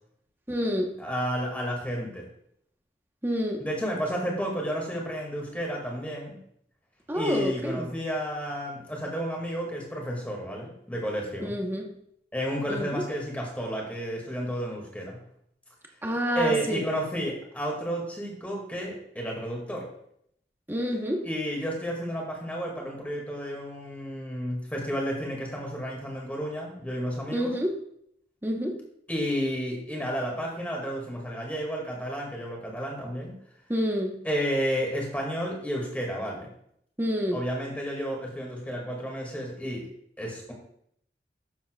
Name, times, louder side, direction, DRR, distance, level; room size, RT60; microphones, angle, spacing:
voice 1, 0.5-0.9 3.2-3.6 7.1-7.9 11.4-11.9 12.7-13.0 16.0-16.8 20.7-21.3 27.3-27.8 28.4-28.8 33.7-34.2 37.0-37.4, equal, 10° right, 1 dB, 1.0 m, -28 dB
voice 2, 1.0-2.3 3.6-6.4 7.1-11.5 12.3-15.2 16.4-19.9 21.2-27.5 29.1-33.3 34.2-36.5 37.3-39.8 40.2-40.5, equal, 10° left, -1 dB, 2.0 m, -31 dB
12.5 x 7.3 x 2.3 m, 0.70 s
head